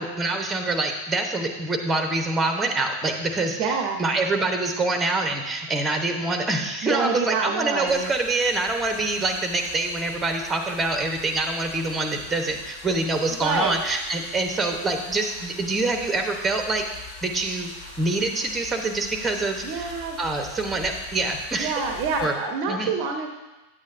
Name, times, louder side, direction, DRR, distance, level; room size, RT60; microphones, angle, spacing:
voice 1, 0.0-3.7 4.0-16.8 17.2-17.7 18.0-19.9 20.2-21.7 22.2-22.3 22.7-22.9, right 2 dB, 15° right, 5 dB, 0.9 m, -25 dB
voice 2, 3.6-4.0 6.8-8.1 13.4-13.8 19.6-20.2 21.6-23.3, right 4 dB, 45° right, 4 dB, 0.7 m, -26 dB
sound 1, 7.9-22.3, left 3 dB, 55° left, 1.9 m, -43 dB
8.9 x 8.4 x 2.6 m, 1.1 s
figure-of-eight pair, 90°, 0 cm